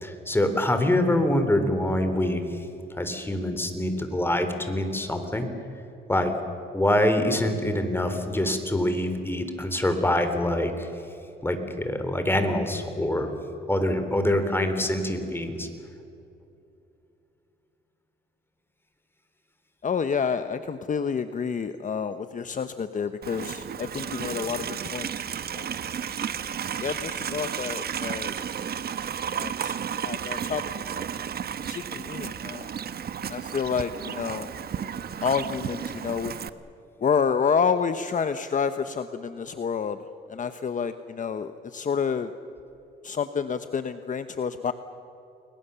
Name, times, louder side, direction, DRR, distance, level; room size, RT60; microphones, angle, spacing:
voice 1, 0.0-2.4 3.0-5.5 6.1-6.3 6.7-10.9 11.4-13.3 13.7-15.7, left 1 dB, 10° left, 7 dB, 3.7 m, -25 dB
voice 2, 19.8-25.2 25.5-26.1 26.8-28.3 29.3-29.8 30.0-30.6 30.9-31.1 31.7-32.7 33.3-34.5 35.2-36.3 37.0-40.0 40.3-42.3 43.0-44.7, left 6 dB, 40° left, 10 dB, 1.0 m, -29 dB
Livestock farm animals working animals, 23.2-36.5, right 8 dB, 50° right, 1.1 m, -33 dB
30.0 x 21.5 x 7.0 m, 2.7 s
cardioid pair, 90°, 20 cm